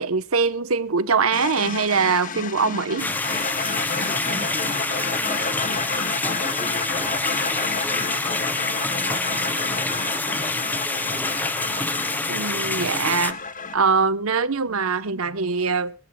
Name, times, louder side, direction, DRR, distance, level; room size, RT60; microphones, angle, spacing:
voice 1, 0.0-3.1 12.3-13.4 13.7-15.9, right 5 dB, 85° right, 1.0 m, -22 dB
sound 1, 1.3-13.8, left 5 dB, 40° left, 1.1 m, -30 dB
sound 2, 3.0-13.3, left 2 dB, 10° left, 0.7 m, -27 dB
voice 2, 4.2-8.3 8.8-11.3, right 1 dB, 15° right, 2.2 m, -41 dB
24.0 x 12.5 x 2.3 m
head